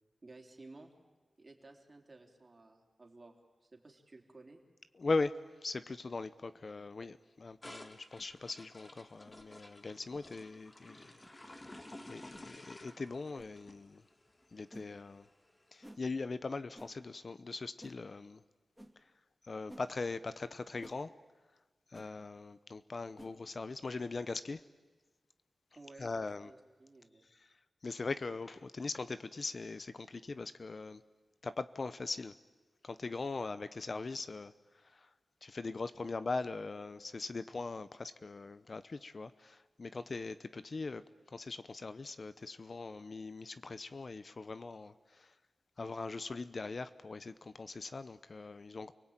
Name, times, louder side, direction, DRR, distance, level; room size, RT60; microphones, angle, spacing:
voice 1, 0.2-0.9 1.4-3.3 3.6-4.6 25.8-27.3, right 2 dB, 40° right, 2 dB, 3.8 m, -55 dB
voice 2, 5.0-11.7 12.1-14.0 14.5-15.3 15.7-18.4 19.5-21.1 21.9-24.6 26.0-26.5 27.4-27.5 27.8-31.0 31.4-32.3 32.8-34.5 34.8-35.1 35.4-45.3 45.8-48.9, left 3 dB, 55° left, 13 dB, 0.8 m, -40 dB
sound 1, 7.6-15.8, left 1 dB, 25° left, 1.9 m, -54 dB
sound 2, 8.2-8.3 9.2-9.4 10.1-10.3 11.2-11.3 12.3-12.5 13.3-13.5 14.7-14.9 15.8-16.0 16.7-16.9 17.8-18.0 18.8-18.9 19.7-19.9 20.8-21.0 21.9-22.1 23.1-23.4, equal, 5° right, 2.4 m, -54 dB
29.0 x 19.0 x 9.1 m, 1.3 s
wide cardioid pair, 75°, 0 cm